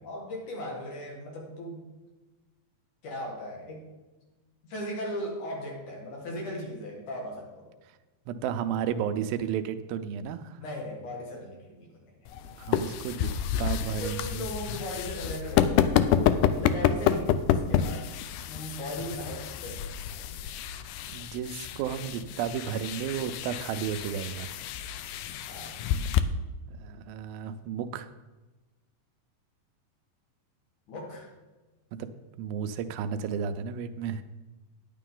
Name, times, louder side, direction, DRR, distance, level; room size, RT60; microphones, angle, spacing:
voice 1, 0.0-1.9 3.0-3.9 4.6-7.7 10.6-12.1 14.0-18.1 18.5-19.8 25.5-25.8 30.9-31.3, equal, 60° left, -1 dB, 3.2 m, -38 dB
voice 2, 8.3-10.6 12.6-13.3 13.6-14.5 21.1-24.5 26.7-28.1 32.0-32.1 32.4-34.2, right 8 dB, 85° right, 10 dB, 2.4 m, -33 dB
sound 1, 12.3-26.2, left 9 dB, 85° left, 1.9 m, -29 dB
10.0 x 9.3 x 3.8 m, 1.1 s
omnidirectional pair, 4.2 m